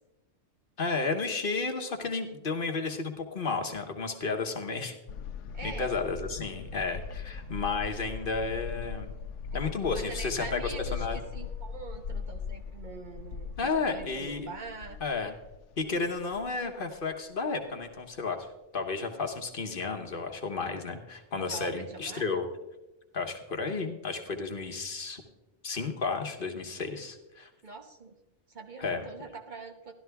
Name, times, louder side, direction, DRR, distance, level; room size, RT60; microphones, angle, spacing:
voice 1, 0.8-5.0 5.6-9.1 9.5-10.6 10.9-11.2 13.6-14.4 15.0-15.3 15.8-18.5 18.7-22.5 23.1-25.2 25.6-27.5 28.8-29.1, left 4 dB, 50° left, 5 dB, 1.2 m, -32 dB
sound 1, 5.1-17.1 17.4-17.5 17.8-17.9, left 6 dB, 85° left, 1.0 m, -39 dB
voice 2, 5.5-5.9 9.9-15.0 21.4-22.4 27.6-28.1 28.5-29.9, right 3 dB, 40° right, 3 dB, 1.1 m, -43 dB
12.5 x 12.0 x 3.4 m, 0.98 s
omnidirectional pair, 1.2 m